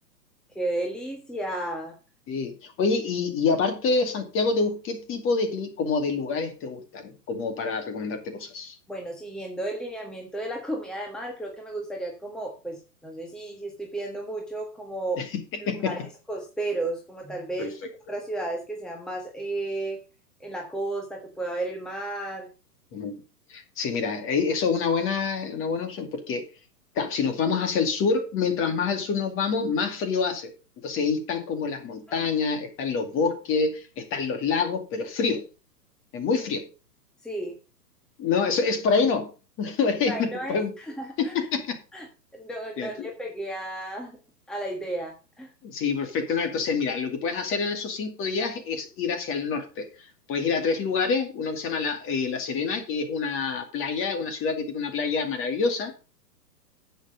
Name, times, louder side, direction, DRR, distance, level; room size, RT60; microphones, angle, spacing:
voice 1, 0.5-1.9 8.9-15.2 15.8-17.7 18.1-20.0 20.4-22.5 32.1-32.3 37.2-37.6 40.1-41.3 41.9-42.1 42.3-44.1 44.5-45.5, right 2 dB, ahead, 1 dB, 1.5 m, -33 dB
voice 2, 2.3-8.8 15.2-15.3 15.7-16.0 17.6-17.7 22.9-23.1 23.5-26.5 27.0-30.5 30.8-35.5 36.1-36.7 38.2-39.3 39.6-40.7 41.2-41.8 42.8-43.1 45.6-56.0, left 5 dB, 25° left, 7 dB, 2.3 m, -27 dB
10.0 x 7.6 x 5.1 m, 0.33 s
hypercardioid pair, 125°, 50 cm